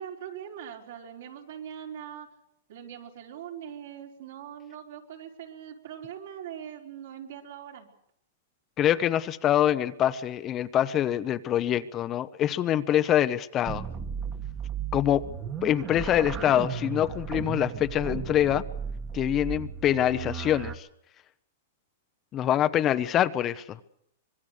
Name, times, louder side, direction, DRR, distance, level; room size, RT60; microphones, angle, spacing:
voice 1, 0.0-2.3 2.7-7.9, right 9 dB, 70° right, 1 dB, 4.5 m, -41 dB
voice 2, 8.8-13.8 14.9-15.3 15.6-18.6 19.1-20.9 22.3-23.6, left 11 dB, 25° left, 12 dB, 0.9 m, -25 dB
sound 1, 13.7-20.8, right 7 dB, 25° right, 1.6 m, -35 dB
25.0 x 21.0 x 6.8 m, 0.74 s
hypercardioid pair, 145°, 0 cm